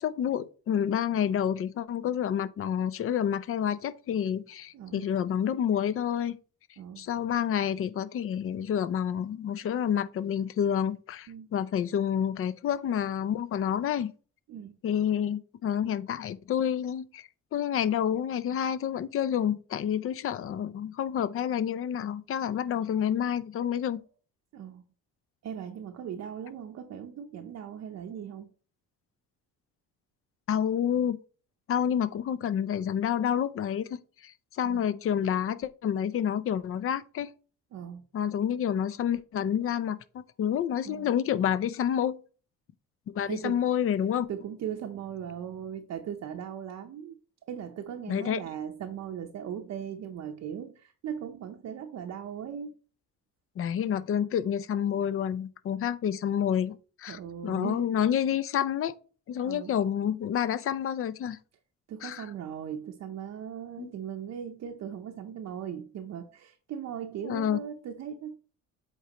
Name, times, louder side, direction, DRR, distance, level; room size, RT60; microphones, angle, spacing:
voice 1, 0.0-6.4 7.0-14.1 14.8-24.0 30.5-31.2 31.7-34.0 34.2-37.3 38.1-42.2 43.1-44.3 48.1-48.4 53.6-58.9 59.3-61.4 62.0-62.3 63.8-63.9 67.2-67.6, left 9 dB, 45° left, 0.5 m, -29 dB
voice 2, 4.7-5.1 6.8-7.1 11.3-11.5 14.5-14.8 24.5-24.8 25.4-28.5 34.6-34.9 37.7-38.0 40.8-41.1 43.3-43.6 44.3-47.2 47.5-52.8 57.1-57.9 59.4-59.8 61.9-68.4, right 8 dB, 55° right, 0.7 m, -38 dB
8.0 x 4.5 x 2.9 m
cardioid pair, 130°, 32 cm